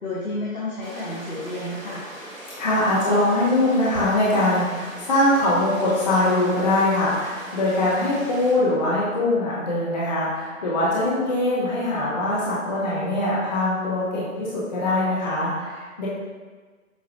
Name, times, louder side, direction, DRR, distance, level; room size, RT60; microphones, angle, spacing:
voice 1, 0.0-2.0, left 1 dB, 85° left, -8 dB, 1.3 m, -31 dB
sound 1, 0.8-8.5, right 1 dB, 35° right, 1.4 m, -40 dB
voice 2, 2.6-16.1, left 1 dB, 30° left, -7 dB, 0.7 m, -22 dB
6.9 x 2.4 x 2.8 m, 1.4 s
figure-of-eight pair, 150°, 42 cm